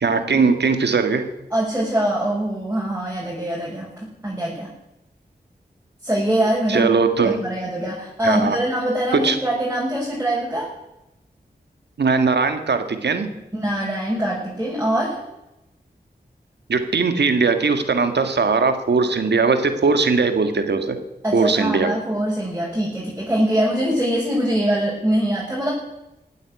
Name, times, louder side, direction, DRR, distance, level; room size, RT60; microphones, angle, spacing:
voice 1, 0.0-1.2 6.7-7.4 8.2-8.6 9.2-9.4 12.0-13.3 16.7-21.0 21.3-21.9, right 4 dB, 85° right, 8 dB, 1.8 m, -19 dB
voice 2, 1.5-4.7 6.0-6.9 7.2-10.7 13.5-15.2 21.2-25.7, right 1 dB, 15° right, -4 dB, 6.4 m, -23 dB
15.0 x 9.3 x 9.4 m, 0.92 s
cardioid pair, 45°, 17 cm